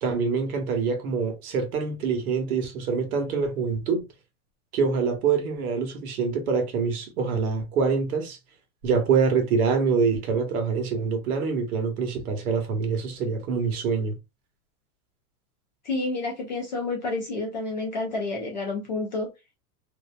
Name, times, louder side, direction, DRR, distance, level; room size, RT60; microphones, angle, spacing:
voice 1, 0.0-4.0 4.7-8.4 8.8-14.2, right 5 dB, 65° right, 1.0 m, -25 dB
voice 2, 15.8-19.3, left 3 dB, 30° left, 0.4 m, -29 dB
2.6 x 2.1 x 2.4 m
supercardioid pair, 170°, 47 cm